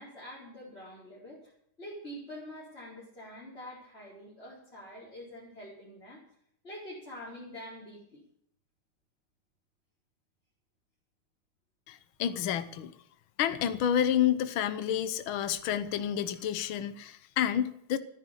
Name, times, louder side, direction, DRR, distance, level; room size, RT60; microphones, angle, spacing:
voice 1, 0.0-1.5 1.8-6.2 6.6-8.2, equal, 30° left, -6 dB, 5.1 m, -46 dB
voice 2, 11.9-12.9 13.4-18.0, left 10 dB, 75° left, 12 dB, 1.8 m, -29 dB
14.0 x 10.5 x 8.2 m, 0.69 s
omnidirectional pair, 2.3 m